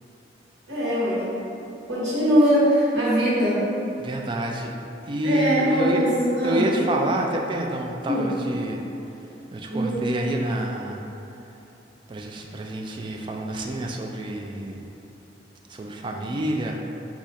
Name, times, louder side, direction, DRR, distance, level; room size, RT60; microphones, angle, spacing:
voice 1, 0.7-1.3 1.9-3.6 5.2-6.6 8.0-8.3 9.7-10.0, equal, 65° right, -9 dB, 1.2 m, -21 dB
voice 2, 4.0-4.7 5.1-6.1 6.4-8.8 9.5-11.0 12.1-14.8 15.7-16.8, right 1 dB, 25° right, 1 dB, 0.3 m, -28 dB
4.9 x 2.4 x 4.1 m, 3.0 s
head